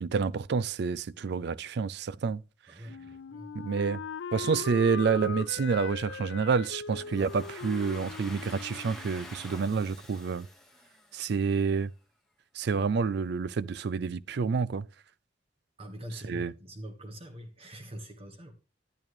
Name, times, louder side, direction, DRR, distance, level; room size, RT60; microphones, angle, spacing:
voice 1, 0.0-2.4 3.6-4.0 4.3-10.5 11.1-11.9 12.6-14.9 16.3-16.5, right 5 dB, 60° right, 0.4 m, -28 dB
voice 2, 2.7-3.5 15.8-18.5, equal, 30° right, 1.3 m, -44 dB
Wind instrument woodwind instrument, 2.9-9.7, left 5 dB, 85° left, 0.5 m, -40 dB
Domestic sounds home sounds, 6.9-11.7, left 2 dB, ahead, 1.3 m, -48 dB
10.5 x 8.9 x 3.1 m
head